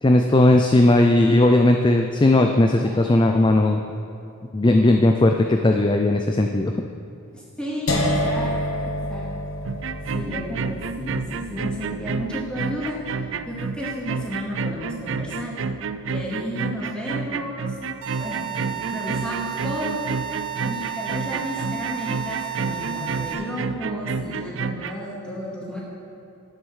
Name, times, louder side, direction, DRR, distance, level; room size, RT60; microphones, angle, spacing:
voice 1, 0.0-3.8 4.5-6.7, left 2 dB, 20° left, 4 dB, 0.4 m, -17 dB
voice 2, 7.3-8.5 8.8-9.3 10.1-11.2 11.5-13.0 13.5-15.5 16.1-17.7 18.2-20.1 20.6-25.8, equal, 5° left, -5 dB, 2.3 m, -32 dB
sound 1, 7.9-13.8, left 1 dB, 75° left, 1.4 m, -29 dB
sound 2, 9.6-25.0, right 5 dB, 55° right, 0.4 m, -30 dB
sound 3, 18.0-23.3, right 10 dB, 80° right, 1.9 m, -32 dB
11.0 x 8.8 x 6.4 m, 2.7 s
head